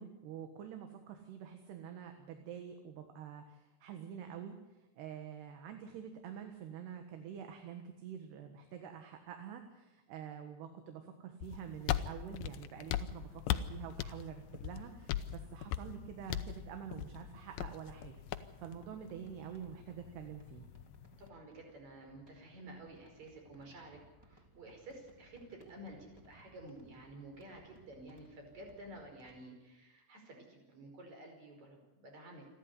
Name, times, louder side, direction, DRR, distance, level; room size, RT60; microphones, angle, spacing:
voice 1, 0.0-18.2 18.6-20.7, right 8 dB, 70° right, 6 dB, 3.4 m, -47 dB
sound 1, 11.4-21.3, left 11 dB, 80° left, 2.1 m, -40 dB
sound 2, 12.7-29.4, right 1 dB, 5° right, 2.3 m, -63 dB
voice 2, 21.2-32.6, right 1 dB, 40° right, 3 dB, 6.1 m, -52 dB
28.5 x 12.0 x 9.7 m, 1.0 s
omnidirectional pair, 5.2 m